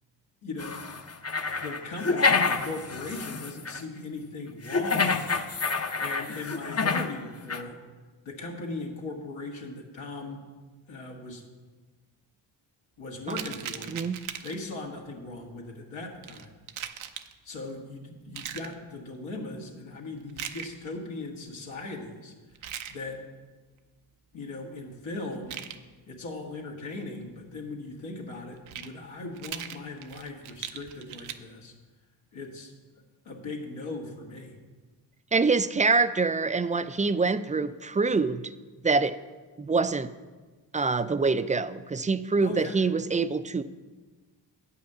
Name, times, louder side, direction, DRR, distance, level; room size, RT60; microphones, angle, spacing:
voice 1, 0.4-0.8 1.6-5.4 6.0-7.8 8.2-10.4 10.9-11.4 13.0-13.9 14.4-16.5 17.4-22.3 22.9-23.2 24.3-25.6 26.1-31.7 32.3-32.7 33.3-34.6 42.4-42.8, left 2 dB, 80° left, -1 dB, 1.7 m, -38 dB
sound 1, 0.6-3.8 4.7-7.2 7.5-7.6, left 4 dB, 30° left, 0.7 m, -28 dB
sound 2, 13.3-14.7 16.2-17.3 18.3-18.7 20.3-20.8 22.5-23.0 25.3-25.8 28.5-28.9 29.3-31.4, right 10 dB, 80° right, 0.7 m, -39 dB
voice 2, 35.3-38.4 38.8-39.2 39.6-40.1 40.7-43.6, right 4 dB, 15° right, 13 dB, 0.4 m, -25 dB
8.8 x 5.6 x 6.7 m, 1.3 s
supercardioid pair, 50°, 47 cm